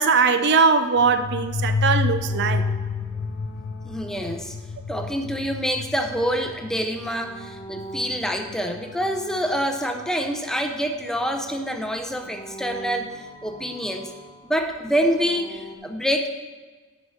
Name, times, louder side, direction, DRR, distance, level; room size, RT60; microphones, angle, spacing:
voice 1, 0.0-2.6, right 5 dB, 50° right, 9 dB, 0.5 m, -20 dB
sound 1, 1.0-9.4, left 4 dB, 75° left, 0.6 m, -30 dB
sound 2, 2.3-5.2 5.8-10.6 10.9-15.8, right 1 dB, 30° left, 1.2 m, -44 dB
voice 2, 3.8-4.6 4.9-13.1 13.4-14.1 14.5-16.3, equal, ahead, 5 dB, 0.6 m, -26 dB
9.6 x 5.1 x 6.4 m, 1.4 s
head